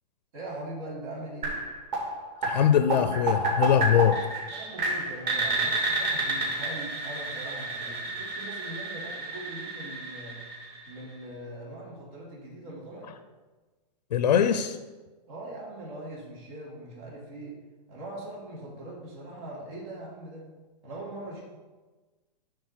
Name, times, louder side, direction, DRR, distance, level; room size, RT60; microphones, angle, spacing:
voice 1, 0.3-1.6 4.5-10.4 10.9-13.1 15.3-17.6 17.9-20.5 20.8-21.4, right 1 dB, 60° right, -5 dB, 3.1 m, -41 dB
sound 1, 1.4-11.2, right 2 dB, 30° right, 3.0 m, -31 dB
voice 2, 2.4-4.2 14.1-14.8, left 9 dB, 85° left, 9 dB, 0.6 m, -22 dB
9.6 x 3.9 x 6.6 m, 1.3 s
hypercardioid pair, 160°, 21 cm